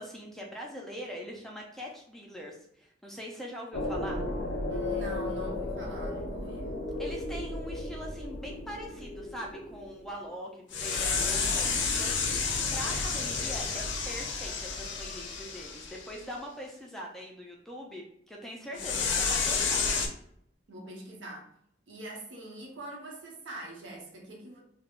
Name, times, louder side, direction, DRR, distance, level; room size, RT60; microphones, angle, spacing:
voice 1, 0.0-4.2 7.0-19.8, equal, ahead, -1 dB, 0.3 m, -42 dB
sound 1, 3.7-10.1 10.7-16.2 18.8-20.1, left 4 dB, 75° left, 0.5 m, -32 dB
voice 2, 4.7-6.7 18.7-19.4 20.7-21.5 21.9-24.6, right 1 dB, 85° right, -2 dB, 0.8 m, -44 dB
3.5 x 2.0 x 2.3 m, 0.71 s
head